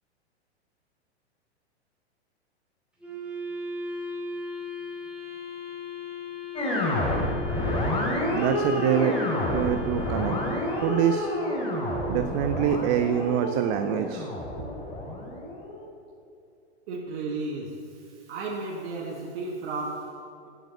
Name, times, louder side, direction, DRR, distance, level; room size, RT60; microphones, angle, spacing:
Wind instrument woodwind instrument, 3.0-12.3, left 2 dB, 5° right, 2.6 m, -37 dB
sound 1, 6.5-15.8, left 1 dB, 15° left, 2.9 m, -29 dB
voice 1, 8.3-9.2 9.5-11.3 12.1-14.3, right 10 dB, 40° right, 9 dB, 0.6 m, -26 dB
voice 2, 16.9-20.5, right 3 dB, 60° right, -1 dB, 1.5 m, -34 dB
8.9 x 8.1 x 8.1 m, 2.6 s
hypercardioid pair, 110°, 33 cm